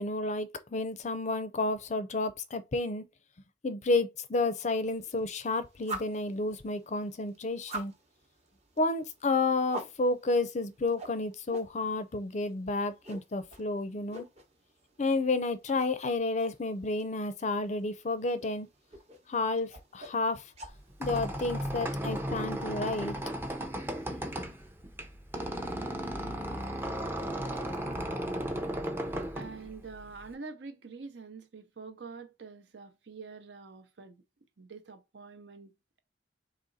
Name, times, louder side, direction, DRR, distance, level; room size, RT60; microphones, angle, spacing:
voice 1, 0.0-3.0 3.6-7.9 8.8-14.3 15.0-18.7 19.3-20.5 21.0-23.2, left 2 dB, 40° left, 0.5 m, -31 dB
sound 1, 4.9-22.0, right 2 dB, 35° right, 0.9 m, -48 dB
Squeak, 20.7-30.3, equal, 10° right, 0.6 m, -35 dB
voice 2, 29.3-34.2 34.6-36.0, right 4 dB, 65° right, 0.7 m, -46 dB
4.1 x 3.0 x 3.9 m
head